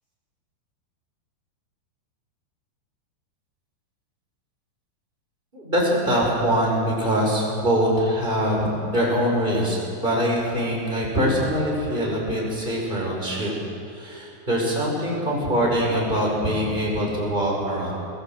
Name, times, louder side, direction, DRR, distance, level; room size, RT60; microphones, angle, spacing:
voice 1, 5.5-13.5 13.9-17.9, equal, 10° right, -3 dB, 5.3 m, -23 dB
21.5 x 19.5 x 7.8 m, 2.6 s
omnidirectional pair, 5.4 m